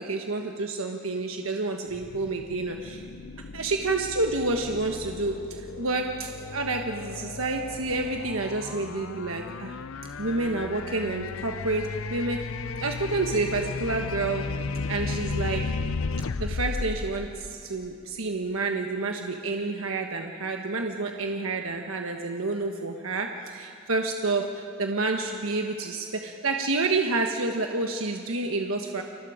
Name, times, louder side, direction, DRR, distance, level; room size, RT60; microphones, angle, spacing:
voice 1, 0.0-3.0 3.5-9.8 10.2-12.4 12.8-14.4 14.9-15.7 16.4-29.0, right 3 dB, 90° right, 3 dB, 1.3 m, -29 dB
sound 1, 1.9-18.1, left 4 dB, 80° left, 0.6 m, -35 dB
30.0 x 24.5 x 5.0 m, 2.5 s
head